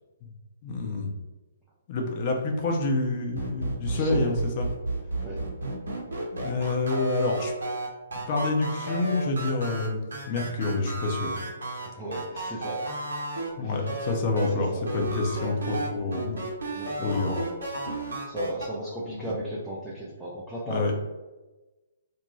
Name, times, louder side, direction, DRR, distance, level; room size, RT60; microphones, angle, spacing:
voice 1, 0.6-1.1 1.9-4.7 6.3-7.5 8.3-11.3 13.6-16.4 17.0-17.4 19.1-19.2 20.7-20.9, left 3 dB, 40° left, 1 dB, 0.6 m, -27 dB
sound 1, 3.4-13.5 13.9-14.5 14.9-18.7, right 2 dB, 70° right, 0.8 m, -32 dB
voice 2, 3.8-4.4 5.2-5.4 11.8-12.9 13.6-13.9 14.5-14.9 16.7-17.6 18.3-20.9, right 1 dB, 5° right, -8 dB, 0.5 m, -36 dB
2.6 x 2.1 x 3.1 m, 1.1 s
figure-of-eight pair, 125°, 0 cm